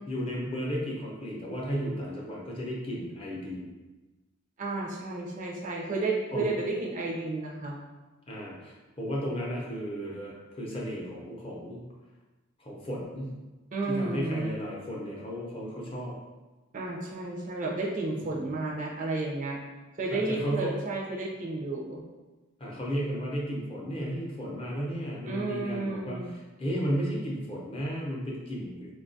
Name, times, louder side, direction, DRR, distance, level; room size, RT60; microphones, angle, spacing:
voice 1, 0.1-3.7 6.3-6.5 8.3-11.8 12.6-13.3 13.9-16.1 18.2-18.6 20.1-20.7 22.6-28.9, equal, 25° left, -4 dB, 0.6 m, -34 dB
voice 2, 4.6-7.8 13.7-14.5 16.7-19.6 20.0-22.0 25.3-26.3, right 2 dB, 40° right, -2 dB, 0.4 m, -32 dB
3.5 x 2.3 x 2.6 m, 1.2 s
head